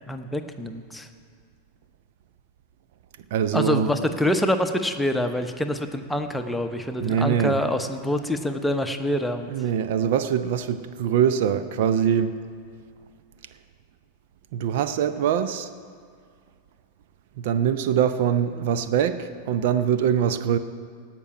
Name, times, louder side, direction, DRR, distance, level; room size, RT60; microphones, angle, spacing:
voice 1, 0.1-1.1 3.5-9.5, left 1 dB, 5° left, 6 dB, 0.9 m, -26 dB
voice 2, 3.3-3.9 7.0-7.6 9.5-12.4 14.5-15.7 17.4-20.6, right 8 dB, 50° right, 11 dB, 0.6 m, -23 dB
17.0 x 6.0 x 9.7 m, 2.1 s
figure-of-eight pair, 90°, 0 cm